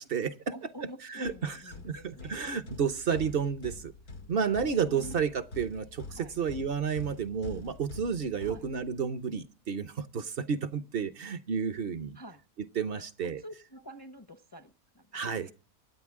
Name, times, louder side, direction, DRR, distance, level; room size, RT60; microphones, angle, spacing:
voice 1, 0.0-0.5 1.1-1.6 1.8-3.9 4.3-12.2 12.8-13.4 15.1-15.5, right 6 dB, 50° right, 0.8 m, -31 dB
voice 2, 0.5-2.3 4.9-5.1 6.1-6.4 8.4-8.6 12.1-12.4 13.2-15.5, equal, 20° left, 0.6 m, -48 dB
sound 1, 1.2-9.2, left 3 dB, 85° left, 2.0 m, -46 dB
25.0 x 9.0 x 3.6 m
omnidirectional pair, 1.6 m